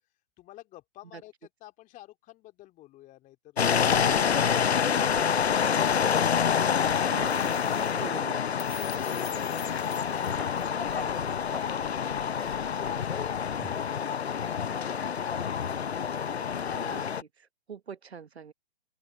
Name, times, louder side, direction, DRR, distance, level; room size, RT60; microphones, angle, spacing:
voice 1, 0.4-5.8, left 16 dB, 25° left, 2.4 m, -52 dB
sound 1, 3.6-17.2, left 7 dB, 85° left, 0.8 m, -27 dB
sound 2, 4.2-13.7, left 7 dB, 70° left, 7.7 m, -46 dB
voice 2, 7.1-7.7 7.9-8.4 16.7-17.0 17.7-18.5, right 6 dB, 85° right, 1.2 m, -42 dB
sound 3, 9.2-9.4 9.8-10.1 10.4-10.6 11.0-11.2 11.5-11.7 12.0-14.0, left 1 dB, ahead, 2.8 m, -47 dB
open air
hypercardioid pair, 125°, 31 cm